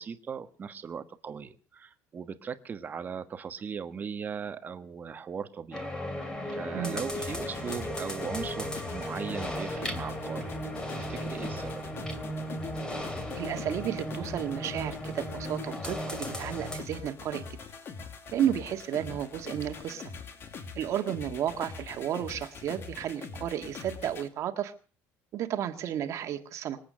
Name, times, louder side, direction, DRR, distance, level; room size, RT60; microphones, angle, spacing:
voice 1, 0.0-5.9 6.2-11.8 19.1-19.2, right 6 dB, 30° right, 9 dB, 1.4 m, -39 dB
sound 1, 5.7-16.8, equal, 15° left, 2.8 m, -36 dB
sound 2, 7.1-24.3, left 5 dB, 40° left, 2.2 m, -43 dB
voice 2, 13.4-17.6 18.3-20.0 20.8-24.7 25.3-26.8, right 10 dB, 50° right, 7 dB, 1.8 m, -32 dB
25.5 x 8.7 x 6.3 m, 0.38 s
cardioid pair, 145°, 6 cm